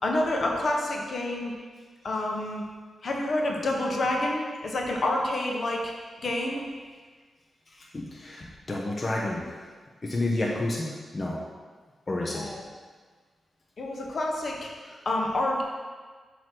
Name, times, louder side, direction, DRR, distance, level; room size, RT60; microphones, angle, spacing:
voice 1, 0.0-1.5 2.0-2.6 3.0-5.9 6.2-6.7 12.3-12.7 13.8-14.7 15.0-15.6, left 1 dB, 55° left, 0 dB, 1.0 m, -28 dB
voice 2, 7.9-9.5 10.0-11.4 12.1-12.4, left 2 dB, 35° left, -3 dB, 0.9 m, -30 dB
7.5 x 3.0 x 6.1 m, 1.5 s
cardioid pair, 80°, 0 cm